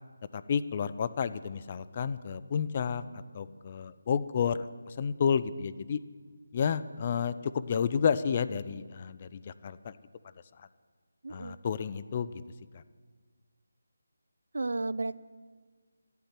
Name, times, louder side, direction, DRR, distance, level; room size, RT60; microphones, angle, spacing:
voice 1, 0.3-3.0 3.3-6.0 6.5-10.0 10.6-10.7 11.3-12.3 12.7-12.8, left 7 dB, 30° left, 15 dB, 0.4 m, -31 dB
voice 2, 11.2-11.6 14.5-15.2, right 3 dB, 75° right, 17 dB, 0.4 m, -33 dB
13.0 x 11.5 x 4.4 m, 1.6 s
figure-of-eight pair, 165°, 0 cm